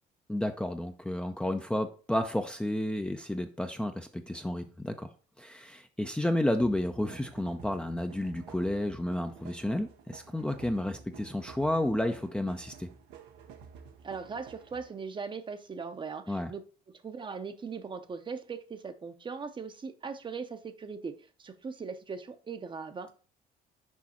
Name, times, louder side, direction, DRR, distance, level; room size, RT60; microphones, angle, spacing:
voice 1, 0.3-5.1 5.4-12.9 16.3-16.5, left 1 dB, 5° left, 0.5 m, -31 dB
sound 1, 6.6-15.0, right 6 dB, 90° right, 1.1 m, -51 dB
voice 2, 14.0-16.6 16.9-23.1, right 5 dB, 30° right, 0.7 m, -39 dB
6.3 x 4.8 x 4.3 m
cardioid pair, 110°, 17 cm